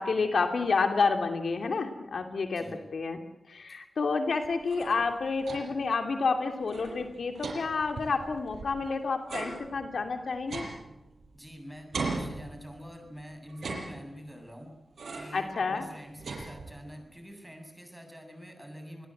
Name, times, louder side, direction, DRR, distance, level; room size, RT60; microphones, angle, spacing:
voice 1, 0.0-2.6 2.9-3.2 3.5-10.6 13.7-13.8 15.3-15.8, left 4 dB, 75° left, 5 dB, 2.8 m, -29 dB
voice 2, 2.6-2.9 11.3-14.7 15.1-19.1, equal, 5° right, 4 dB, 7.9 m, -46 dB
sound 1, 4.4-5.9 6.2-6.3 6.6-8.8 9.3-11.5 11.9-13.0 13.5-14.4 15.0-15.5 15.8-17.0, right 3 dB, 80° right, 6.3 m, -39 dB
27.5 x 21.0 x 8.0 m, 0.87 s
wide cardioid pair, 80°, 0 cm